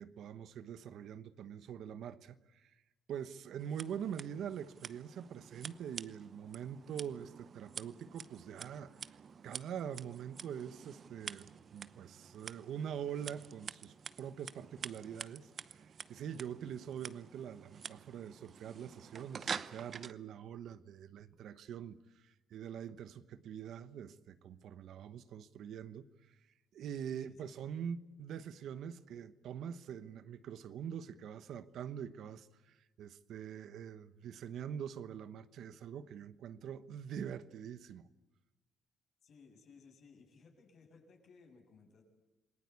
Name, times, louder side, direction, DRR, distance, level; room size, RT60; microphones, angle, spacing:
voice 1, 0.0-2.7 3.1-9.0 9.4-26.4 26.7-38.1, right 8 dB, 70° right, 1.1 m, -44 dB
Scissors, 3.6-20.1, right 6 dB, 45° right, 0.8 m, -48 dB
voice 2, 27.2-27.7 39.2-42.0, left 5 dB, 60° left, 7.4 m, -61 dB
28.0 x 20.0 x 8.4 m
cardioid pair, 110°, 0 cm